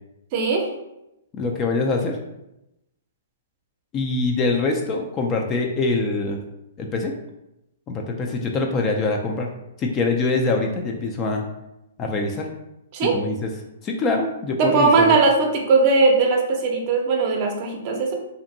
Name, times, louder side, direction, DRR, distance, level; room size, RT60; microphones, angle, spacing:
voice 1, 0.3-0.7 12.9-13.1 14.6-18.1, right 4 dB, 40° right, 1 dB, 0.5 m, -19 dB
voice 2, 1.4-2.2 3.9-6.4 6.8-7.1 7.9-9.5 9.8-11.4 12.0-12.5 13.0-13.5 13.8-15.1, left 3 dB, 25° left, 2 dB, 0.3 m, -24 dB
2.6 x 2.5 x 2.6 m, 0.89 s
hypercardioid pair, 130°, 0 cm